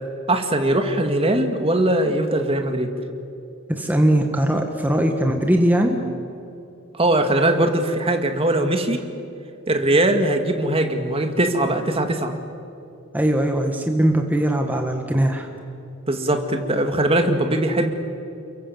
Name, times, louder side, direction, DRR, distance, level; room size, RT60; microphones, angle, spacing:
voice 1, 0.3-2.9 6.9-9.0 9.7-12.3 16.1-17.9, right 1 dB, 30° right, 5 dB, 2.2 m, -20 dB
voice 2, 3.7-6.0 13.1-15.5, right 1 dB, 10° right, 3 dB, 1.6 m, -20 dB
29.5 x 22.5 x 7.9 m, 2.7 s
head